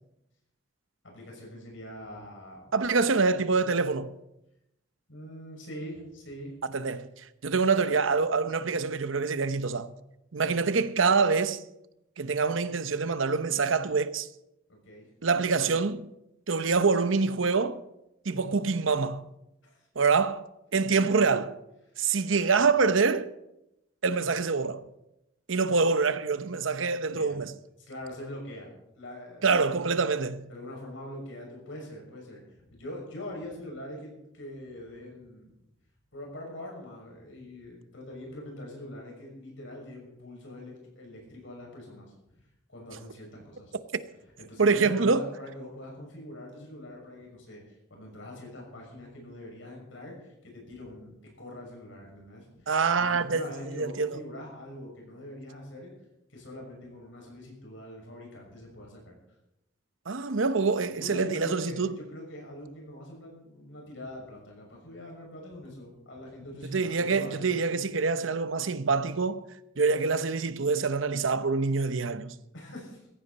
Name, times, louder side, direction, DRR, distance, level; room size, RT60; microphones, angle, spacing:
voice 1, 1.0-2.7 5.1-6.5 14.7-15.1 19.6-19.9 21.1-21.3 27.1-27.5 27.8-29.5 30.5-35.6 36.1-42.4 42.7-43.7 44.4-55.9 56.3-59.2 60.9-67.7 72.5-73.0, left 1 dB, 80° left, 6.2 m, -43 dB
voice 2, 2.7-4.1 6.7-7.1 7.4-9.9 10.3-11.6 12.2-14.3 15.2-16.1 16.5-17.8 18.2-19.3 20.0-20.4 20.7-21.5 22.0-23.3 24.0-24.8 25.5-27.5 29.4-30.5 44.6-45.2 52.7-54.2 60.1-61.9 66.7-69.4 69.8-72.3, right 4 dB, 90° right, 0.8 m, -25 dB
15.5 x 15.0 x 4.2 m
head